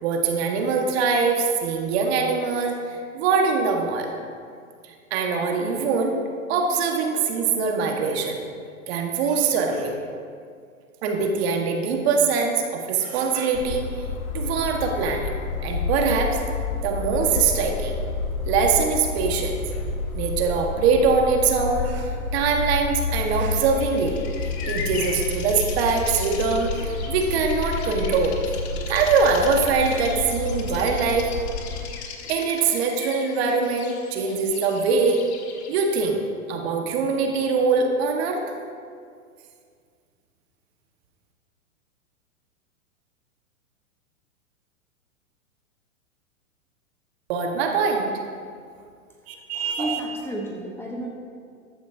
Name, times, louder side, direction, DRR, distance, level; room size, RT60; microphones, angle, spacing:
voice 1, 0.0-4.1 4.8-6.2 6.5-8.4 8.9-10.0 11.0-14.1 14.3-15.3 15.6-16.4 16.8-18.0 18.4-19.5 20.1-24.2 24.7-28.4 28.9-31.3 32.3-35.2 35.7-36.2 36.5-38.4 47.3-48.1 49.3-50.0, right 5 dB, 50° right, 2 dB, 1.5 m, -23 dB
sound 1, 13.5-31.9, left 3 dB, 75° left, 1.3 m, -30 dB
Bird vocalization bird call bird song, 23.3-36.0, left 5 dB, 50° left, 1.4 m, -39 dB
voice 2, 49.5-51.1, right 1 dB, 5° left, -2 dB, 1.0 m, -32 dB
14.0 x 9.5 x 2.7 m, 2.2 s
hypercardioid pair, 120°, 42 cm